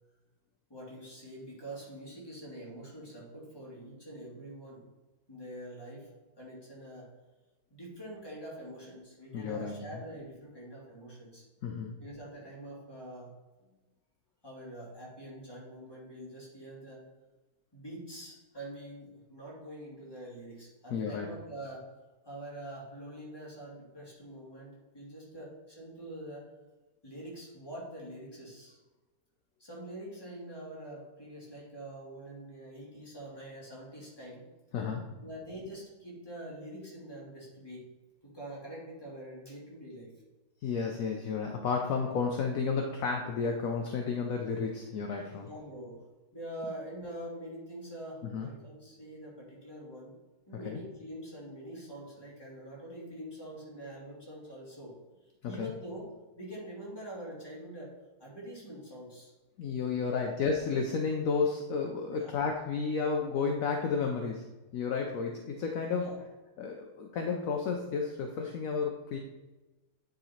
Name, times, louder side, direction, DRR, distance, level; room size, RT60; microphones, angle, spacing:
voice 1, 0.7-4.8 5.3-6.1 6.4-7.1 7.7-11.5 12.0-13.4 14.4-17.0 17.7-21.9 22.2-26.5 27.0-28.8 29.6-34.5 35.2-37.9 38.2-40.1 45.4-46.0 46.3-50.2 50.5-54.9 55.4-57.9 58.2-59.3 60.2-60.3 62.1-62.3 66.0-66.2, right 1 dB, 15° left, -6 dB, 2.4 m, -45 dB
voice 2, 9.3-9.8 11.6-12.0 20.9-21.3 34.7-35.1 40.6-45.5 48.2-48.5 50.5-50.8 55.4-55.7 59.6-66.1 66.6-69.2, left 5 dB, 65° left, 2 dB, 1.0 m, -32 dB
9.5 x 3.9 x 4.3 m, 1.1 s
omnidirectional pair, 1.7 m